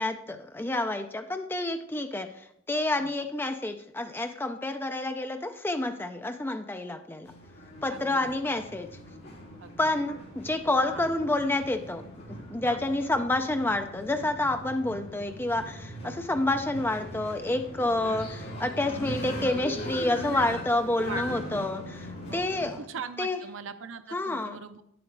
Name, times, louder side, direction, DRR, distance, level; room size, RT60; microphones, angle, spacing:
voice 1, 0.0-7.3 7.8-8.9 9.8-12.0 12.5-22.8 23.2-23.4 24.1-24.6, left 2 dB, 10° left, 7 dB, 0.4 m, -29 dB
sound 1, 7.2-22.8, equal, 50° left, 3.1 m, -40 dB
voice 2, 7.9-8.4 9.6-9.7 10.9-11.1 12.7-12.8 16.0-16.2 20.2-20.5 21.0-21.6 22.3-22.4 22.8-24.8, right 6 dB, 70° right, 11 dB, 0.6 m, -41 dB
10.0 x 7.9 x 3.3 m, 0.75 s
head